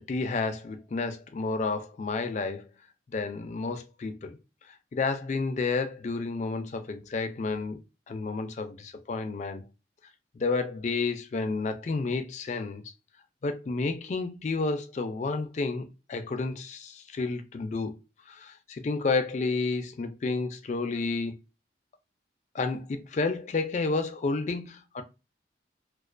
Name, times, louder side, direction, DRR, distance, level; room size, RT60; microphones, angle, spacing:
voice 1, 0.1-2.7 3.1-4.4 4.9-7.8 8.1-9.6 10.3-12.8 13.4-18.0 18.3-21.3 22.5-25.0, left 3 dB, 40° left, 0.3 m, -31 dB
2.3 x 2.2 x 2.4 m
head